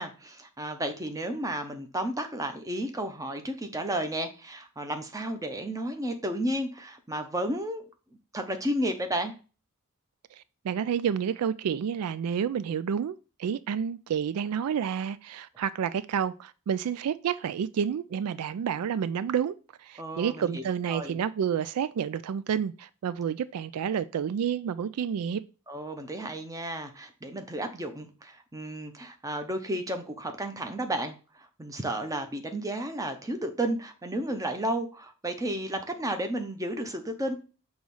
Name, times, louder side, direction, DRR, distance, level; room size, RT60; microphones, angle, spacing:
voice 1, 0.0-7.8 8.3-9.3 20.0-21.2 25.7-37.3, right 1 dB, 15° right, 0.8 m, -32 dB
voice 2, 10.3-25.4, right 8 dB, 75° right, 0.3 m, -30 dB
6.2 x 3.1 x 5.4 m
head